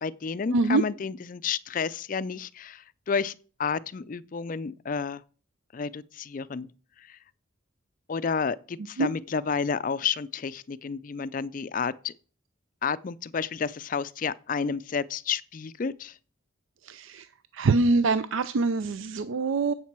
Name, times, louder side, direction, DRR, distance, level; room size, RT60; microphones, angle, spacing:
voice 1, 0.0-3.3 3.6-5.2 5.7-6.7 7.1-7.2 8.1-12.1 12.8-16.1, left 5 dB, 40° left, 0.4 m, -31 dB
voice 2, 0.5-0.8 9.0-9.1 16.8-17.3 17.5-19.7, right 3 dB, 75° right, 0.4 m, -24 dB
8.1 x 7.3 x 5.9 m
head